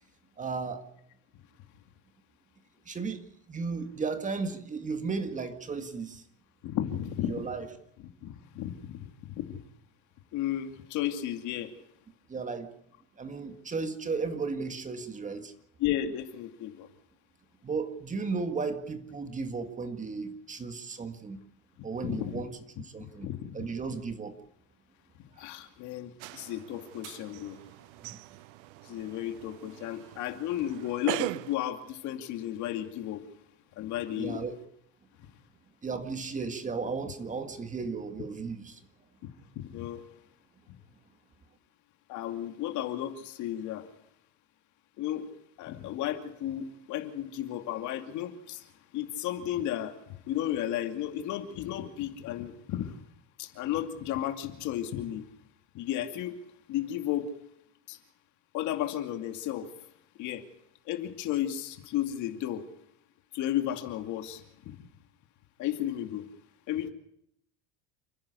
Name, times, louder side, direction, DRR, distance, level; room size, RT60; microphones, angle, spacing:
voice 1, 0.4-0.8 2.9-3.2 3.5-6.2 7.3-7.7 12.3-12.7 13.2-15.5 17.6-21.4 21.8-23.3 23.5-24.3 34.2-34.6 35.8-38.8, right 4 dB, 20° right, 8 dB, 1.9 m, -34 dB
voice 2, 6.6-7.4 8.2-9.1 9.3-9.6 10.3-11.7 15.8-16.9 22.0-22.4 23.0-23.5 25.4-27.6 28.9-33.2 33.8-34.4 39.6-40.0 42.1-43.9 45.0-45.3 45.6-48.6 48.9-53.0 53.4-55.2 55.7-56.4 56.7-57.3 57.9-58.0 58.5-59.7 60.2-60.4 60.9-62.6 63.3-64.8 65.6-66.3 66.7-66.9, left 12 dB, 60° left, 7 dB, 2.5 m, -33 dB
sound 1, 26.2-31.6, right 21 dB, 80° right, 0.7 m, -40 dB
29.5 x 10.5 x 8.4 m, 0.74 s
supercardioid pair, 120°, 33 cm